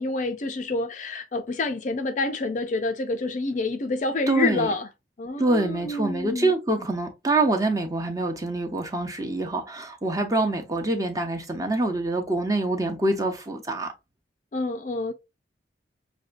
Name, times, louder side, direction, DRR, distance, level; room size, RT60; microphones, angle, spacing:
voice 1, 0.0-4.9 5.2-6.5 14.5-15.1, left 2 dB, 40° left, 0.4 m, -28 dB
voice 2, 4.3-4.7 5.4-13.9, right 2 dB, 20° right, 0.7 m, -25 dB
6.2 x 2.3 x 2.5 m
head